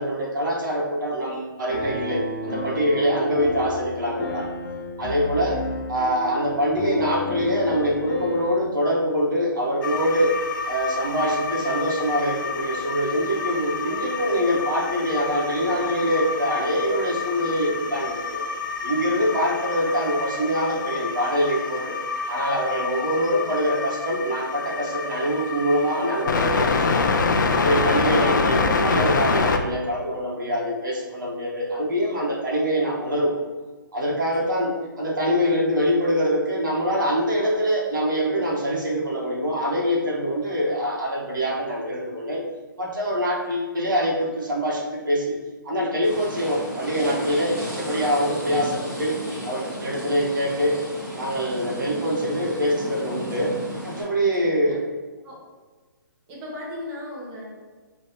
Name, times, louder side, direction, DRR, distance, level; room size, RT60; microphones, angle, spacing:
voice 1, 0.0-4.5 5.0-5.6 5.9-10.3 10.7-18.5 18.8-22.0 22.3-27.2 27.5-33.4 33.9-42.4 42.8-45.4 45.6-49.2 49.4-50.8 51.1-53.5 53.8-54.8, equal, 70° right, -4 dB, 1.3 m, -24 dB
Piano, 1.7-8.5, left 1 dB, 25° left, 1.1 m, -32 dB
sound 1, 9.8-29.6, left 4 dB, 65° left, 0.5 m, -27 dB
voice 2, 34.1-34.7 54.4-54.8 55.2-55.4 56.3-57.4, left 1 dB, 25° right, -6 dB, 1.2 m, -37 dB
sound 2, 46.0-54.0, equal, 5° right, 1.2 m, -34 dB
5.2 x 3.1 x 2.9 m, 1.3 s
figure-of-eight pair, 140°, 11 cm